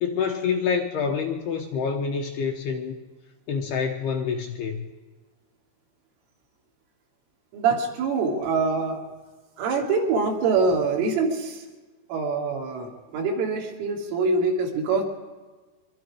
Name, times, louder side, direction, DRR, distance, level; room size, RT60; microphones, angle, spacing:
voice 1, 0.0-3.0 3.5-4.9, left 6 dB, 75° left, 3 dB, 2.6 m, -27 dB
voice 2, 7.5-9.0 9.6-11.6 12.1-15.0, right 4 dB, 85° right, 0 dB, 5.1 m, -24 dB
24.0 x 23.0 x 4.9 m, 1.3 s
omnidirectional pair, 5.6 m